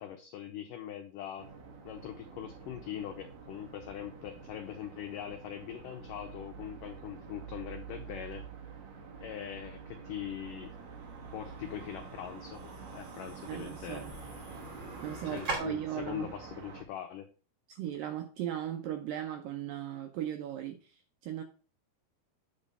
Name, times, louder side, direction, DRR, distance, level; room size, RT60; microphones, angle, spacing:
voice 1, 0.0-1.5 1.8-8.5 9.2-10.7 11.3-14.0 15.2-17.3, left 10 dB, 85° left, 6 dB, 1.8 m, -42 dB
sound 1, 1.4-16.8, right 5 dB, 60° right, 1.9 m, -48 dB
sound 2, 10.2-15.6, right 3 dB, 35° right, 3.2 m, -43 dB
voice 2, 13.5-14.1 15.0-16.3 17.7-21.4, right 11 dB, 80° right, 5 dB, 2.0 m, -37 dB
8.7 x 4.4 x 5.4 m, 0.36 s
omnidirectional pair, 4.8 m